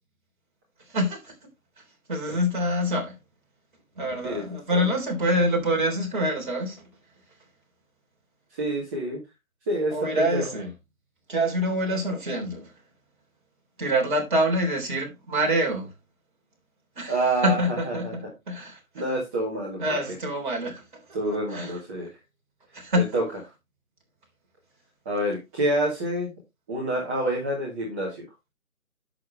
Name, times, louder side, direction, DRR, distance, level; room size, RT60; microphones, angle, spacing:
voice 1, 0.9-1.3 2.1-3.2 4.0-6.8 9.9-10.7 11.3-12.7 13.8-15.9 17.0-17.2 17.4-18.8 19.8-21.0 21.5-21.8 22.7-23.1, equal, 35° right, 3.7 m, -26 dB
voice 2, 8.6-9.2 9.7-10.5 17.1-18.1 18.9-20.0 21.1-22.1 23.1-23.2 25.1-26.3 26.7-28.2, right 1 dB, 10° right, 1.7 m, -27 dB
10.5 x 7.2 x 3.2 m
figure-of-eight pair, 160°, 42 cm